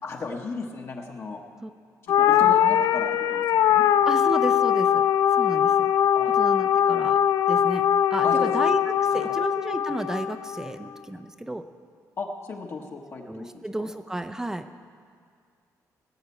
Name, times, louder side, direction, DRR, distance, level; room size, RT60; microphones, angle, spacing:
voice 1, 0.0-1.4 2.0-3.9 6.2-6.3 8.2-8.6 9.1-9.4 12.2-13.9, left 3 dB, 45° left, 1 dB, 1.2 m, -36 dB
sound 1, 2.1-10.7, left 9 dB, 90° left, 0.4 m, -21 dB
voice 2, 4.1-5.0 5.4-5.9 6.4-7.2 7.5-7.8 8.1-11.6 13.3-14.6, right 1 dB, 10° right, 9 dB, 0.6 m, -32 dB
18.5 x 6.5 x 8.4 m, 2.2 s
cardioid pair, 150°, 6 cm